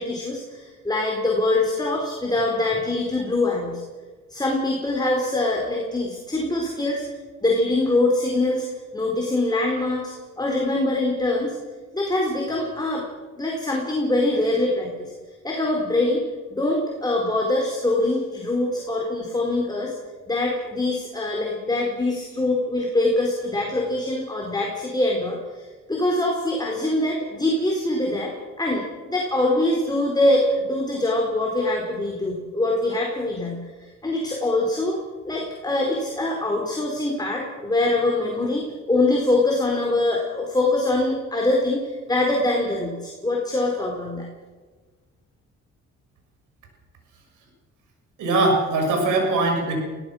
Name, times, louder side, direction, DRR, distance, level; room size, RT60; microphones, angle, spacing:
voice 1, 0.0-3.8 4.3-7.0 7.4-8.7 8.9-11.6 11.9-13.0 13.4-15.1 15.4-16.2 16.5-19.9 20.3-28.3 28.6-33.6 34.0-35.0 35.2-44.3, left 2 dB, 15° left, -1 dB, 4.4 m, -23 dB
voice 2, 48.2-49.7, right 2 dB, 85° right, 2 dB, 6.7 m, -21 dB
23.5 x 17.5 x 6.5 m, 1.4 s
cardioid pair, 90°, 30 cm